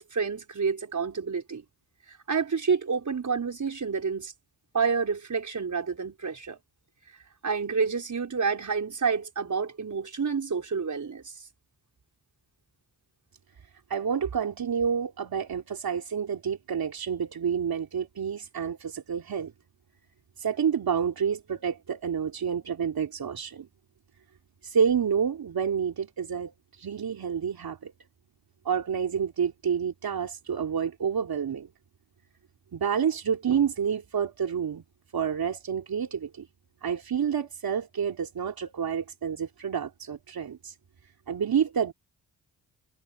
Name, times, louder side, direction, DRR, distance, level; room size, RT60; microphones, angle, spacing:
voice 1, 0.0-1.6 2.1-4.3 4.7-6.6 7.4-11.3, right 5 dB, 50° right, 5.1 m, -29 dB
voice 2, 13.9-19.5 20.4-23.7 24.6-27.9 28.6-31.7 32.7-34.8 35.1-36.5 36.8-40.8 41.3-41.9, right 7 dB, 65° right, 3.5 m, -29 dB
cardioid pair, 55°, 39 cm